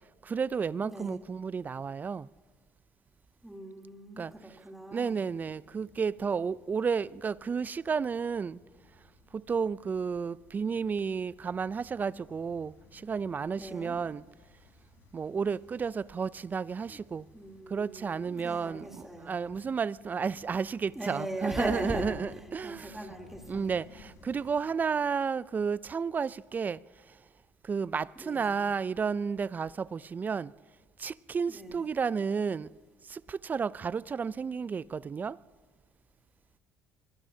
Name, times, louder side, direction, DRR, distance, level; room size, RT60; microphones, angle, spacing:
voice 1, 0.3-2.3 4.2-4.3 4.9-8.6 9.3-12.7 13.0-14.2 15.1-17.2 17.7-23.0 23.5-26.8 27.7-30.5 31.0-32.7 33.1-35.4, right 6 dB, 30° right, 0.4 m, -32 dB
voice 2, 0.8-1.2 3.4-5.2 13.5-14.0 16.9-17.0 17.3-19.4 20.9-23.8 28.1-28.5 31.5-31.9, right 1 dB, 5° right, 3.2 m, -39 dB
sound 1, 5.2-24.7, left 4 dB, 70° left, 3.9 m, -60 dB
25.0 x 21.0 x 2.8 m
supercardioid pair, 75°, 6 cm